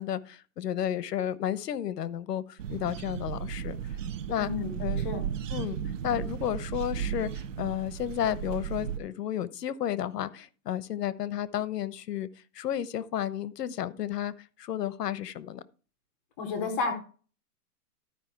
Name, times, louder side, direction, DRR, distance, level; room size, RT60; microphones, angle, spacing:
voice 1, 0.0-3.8 4.3-4.5 4.8-5.0 5.5-5.8 6.0-12.3 12.5-14.3 14.6-15.6, left 10 dB, 85° left, 1.1 m, -32 dB
sound 1, 2.6-9.0, right 8 dB, 55° right, 0.8 m, -35 dB
voice 2, 4.4-4.8 5.0-5.2 16.4-16.9, left 4 dB, 10° left, 0.6 m, -31 dB
13.0 x 5.2 x 4.6 m
hypercardioid pair, 175°, 47 cm